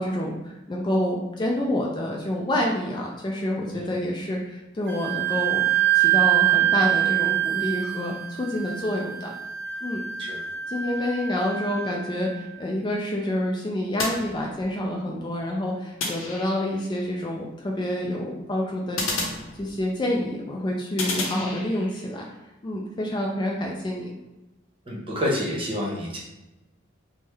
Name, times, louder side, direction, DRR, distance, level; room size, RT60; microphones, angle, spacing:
voice 1, 0.0-5.6 5.9-9.3 9.8-10.0 10.7-19.0 19.6-22.3 22.6-24.1, left 1 dB, 25° left, -1 dB, 0.3 m, -28 dB
Wind instrument woodwind instrument, 4.9-12.3, right 13 dB, 55° right, 0.3 m, -24 dB
sound 1, 14.0-14.9 16.0-16.9 19.0-20.1 21.0-22.0, left 2 dB, 85° left, 0.6 m, -32 dB
voice 2, 24.9-26.2, left 1 dB, 25° right, -5 dB, 0.9 m, -28 dB
3.3 x 2.1 x 3.3 m, 0.99 s
head